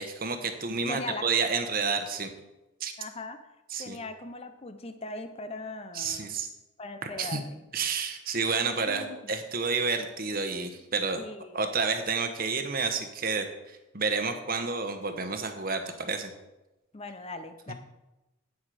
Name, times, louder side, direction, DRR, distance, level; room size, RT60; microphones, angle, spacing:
voice 1, 0.0-2.3 2.8-2.9 3.7-4.0 5.9-6.5 7.0-7.4 7.7-11.2 11.5-16.3, right 4 dB, 40° right, 7 dB, 1.1 m, -30 dB
voice 2, 0.9-1.2 3.0-3.4 3.8-6.3 6.8-7.6 8.6-9.3 11.2-11.6 16.9-17.7, left 2 dB, 25° left, 9 dB, 0.6 m, -39 dB
10.0 x 8.4 x 4.9 m, 1.0 s
head